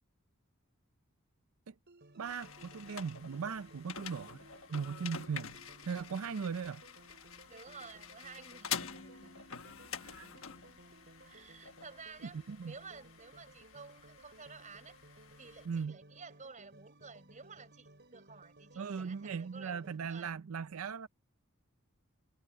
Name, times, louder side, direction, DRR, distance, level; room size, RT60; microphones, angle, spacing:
sound 1, 1.9-20.0, right 2 dB, 50° right, 5.9 m, -59 dB
sound 2, 2.2-15.8, left 8 dB, 70° left, 1.3 m, -47 dB
voice 1, 2.2-4.4 4.7-5.5 5.9-6.8 10.0-10.3 12.2-12.7 15.7-16.0 18.8-21.1, right 6 dB, 80° right, 0.5 m, -38 dB
voice 2, 7.5-9.7 11.2-15.0 15.4-20.3, right 4 dB, 35° right, 5.3 m, -53 dB
head